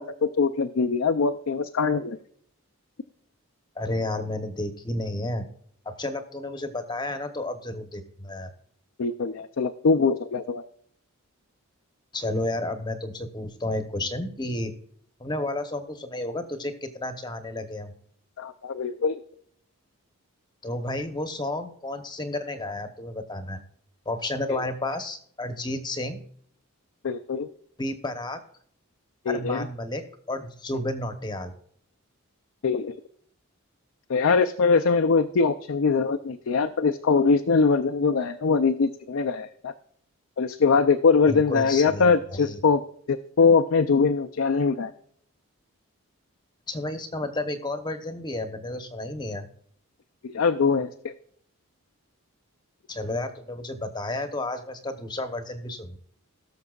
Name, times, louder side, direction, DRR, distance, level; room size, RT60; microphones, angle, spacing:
voice 1, 0.0-2.2 9.0-10.6 18.4-19.2 24.5-24.6 27.0-27.5 29.3-29.6 32.6-33.0 34.1-39.7 40.4-42.8 43.1-44.9 50.2-51.1, left 5 dB, 65° left, 7 dB, 0.5 m, -22 dB
voice 2, 3.8-5.5 5.8-8.5 12.1-14.7 15.2-17.9 20.6-23.6 24.1-26.2 27.8-28.4 29.3-31.5 41.3-42.6 46.7-49.5 52.9-56.0, left 1 dB, 20° left, 7 dB, 0.8 m, -31 dB
18.5 x 6.8 x 2.4 m, 0.63 s
head